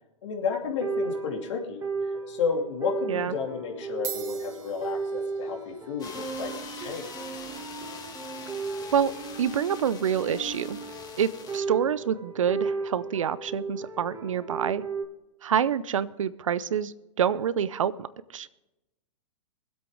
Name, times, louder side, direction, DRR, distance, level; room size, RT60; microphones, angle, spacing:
voice 1, 0.2-1.8 2.3-7.4, left 6 dB, 65° left, 1 dB, 2.6 m, -32 dB
sound 1, 0.6-15.0, right 4 dB, 20° right, 2.0 m, -35 dB
sound 2, 2.4-2.7 3.5-3.6 3.9-12.6, right 10 dB, 60° right, 2.6 m, -47 dB
sound 3, 6.0-11.6, left 5 dB, 20° left, 1.8 m, -43 dB
voice 2, 9.4-10.8 11.2-14.8 15.4-18.1 18.3-18.5, right 8 dB, 75° right, 17 dB, 0.6 m, -27 dB
23.0 x 8.0 x 3.6 m, 0.98 s
hypercardioid pair, 105°, 17 cm